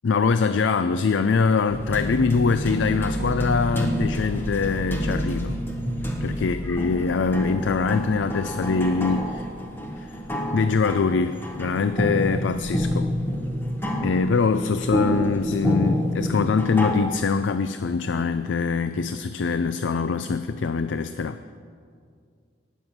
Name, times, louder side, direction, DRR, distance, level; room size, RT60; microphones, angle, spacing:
voice 1, 0.0-5.6 6.2-9.5 10.0-10.1 10.5-13.1 14.0-21.4, left 4 dB, 80° left, 11 dB, 0.4 m, -23 dB
sound 1, 1.7-16.9, equal, 10° left, 1.4 m, -28 dB
18.5 x 6.3 x 7.1 m, 2.2 s
head